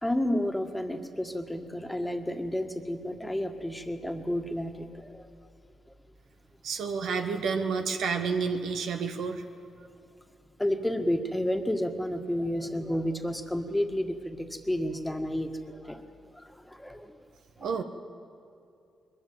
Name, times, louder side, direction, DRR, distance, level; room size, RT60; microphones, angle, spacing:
voice 1, 0.0-5.3 9.8-9.9 10.6-16.0 16.3-17.3 17.6-17.8, left 1 dB, 10° left, 6 dB, 1.8 m, -31 dB
voice 2, 6.6-9.4 17.6-17.8, right 5 dB, 75° right, 6 dB, 1.3 m, -30 dB
21.0 x 13.5 x 9.3 m, 2.6 s
supercardioid pair, 50°, 0 cm